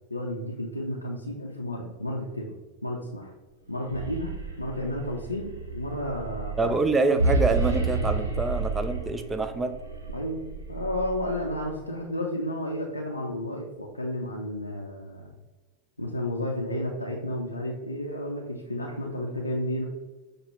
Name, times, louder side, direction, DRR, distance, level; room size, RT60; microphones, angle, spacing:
voice 1, 0.1-2.5 2.8-3.3 3.7-4.3 4.6-6.7 10.1-15.3 16.0-19.8, left 1 dB, 85° left, -2 dB, 0.5 m, -32 dB
sound 1, 3.7-11.8, right 3 dB, 75° right, 0.8 m, -31 dB
voice 2, 6.6-9.8, right 3 dB, 15° right, 8 dB, 0.4 m, -26 dB
6.3 x 2.2 x 3.0 m, 1.2 s
figure-of-eight pair, 90°, 0 cm